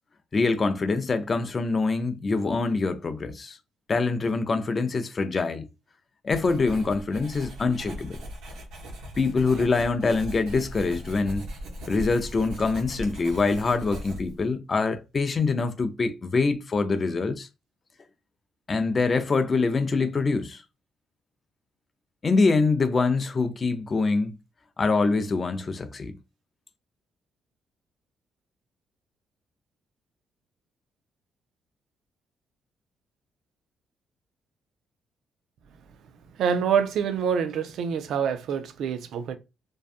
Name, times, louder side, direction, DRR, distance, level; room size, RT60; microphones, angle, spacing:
voice 1, 0.3-3.6 3.9-5.7 6.2-8.2 9.2-11.5 11.9-17.5 18.7-20.6 22.2-24.4 24.8-26.1, left 4 dB, 35° left, 0.4 m, -24 dB
Writing, 6.3-14.5, left 1 dB, 90° right, 0.8 m, -39 dB
voice 2, 36.3-39.4, right 7 dB, 75° right, 0.4 m, -26 dB
2.6 x 2.3 x 2.4 m
cardioid pair, 90°, 0 cm